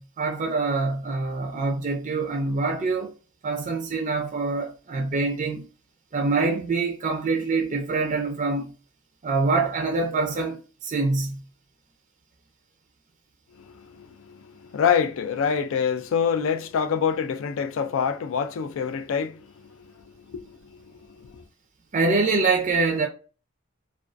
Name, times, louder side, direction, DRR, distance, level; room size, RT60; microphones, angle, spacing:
voice 1, 0.0-3.1 3.4-5.6 6.1-8.7 9.2-11.4 21.9-23.1, right 3 dB, 35° right, 0.4 m, -25 dB
voice 2, 13.6-21.4, left 7 dB, 65° left, 0.3 m, -27 dB
2.3 x 2.3 x 2.4 m
head